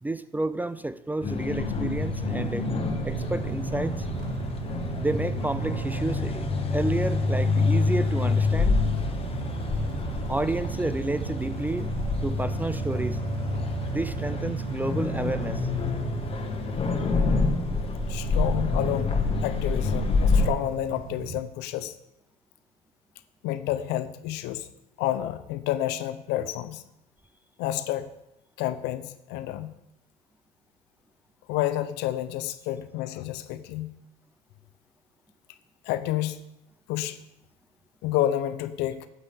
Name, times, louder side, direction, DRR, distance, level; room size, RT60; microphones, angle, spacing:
voice 1, 0.0-2.7 3.0-4.1 5.0-8.8 10.3-11.9 12.2-13.2 13.9-15.7, right 2 dB, 10° right, 14 dB, 0.4 m, -30 dB
sound 1, 1.2-20.5, left 4 dB, 30° left, 1.3 m, -27 dB
sound 2, 1.5-21.4, right 9 dB, 65° right, 0.9 m, -36 dB
voice 2, 18.1-19.2 19.4-21.9 23.4-24.7 25.0-26.8 27.6-28.1 28.6-29.7 31.5-33.9 35.9-36.4 36.9-37.2 38.0-39.1, left 13 dB, 65° left, 12 dB, 0.7 m, -29 dB
12.0 x 8.3 x 3.6 m, 0.87 s
hypercardioid pair, 70°, 18 cm